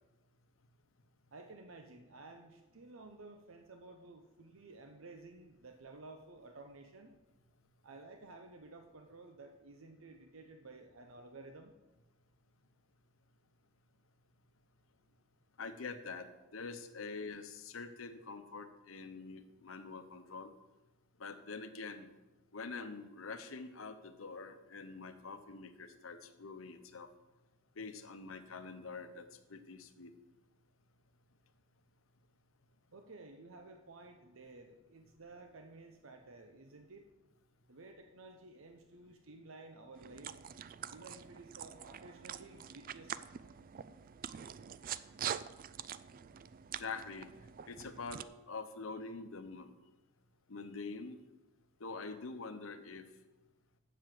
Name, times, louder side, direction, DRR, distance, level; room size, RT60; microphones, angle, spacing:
voice 1, 1.3-7.2 7.8-11.7 32.9-37.1 37.7-40.5 40.9-43.3, right 3 dB, 80° right, 5 dB, 0.8 m, -54 dB
voice 2, 15.6-20.5 21.2-22.1 22.5-27.1 27.8-30.1 46.8-47.3 47.7-49.7 50.5-51.2 51.8-53.1, left 4 dB, 90° left, 9 dB, 0.9 m, -45 dB
sound 1, 40.0-48.2, right 9 dB, 45° right, 0.3 m, -45 dB
7.5 x 7.0 x 7.7 m, 1.1 s
head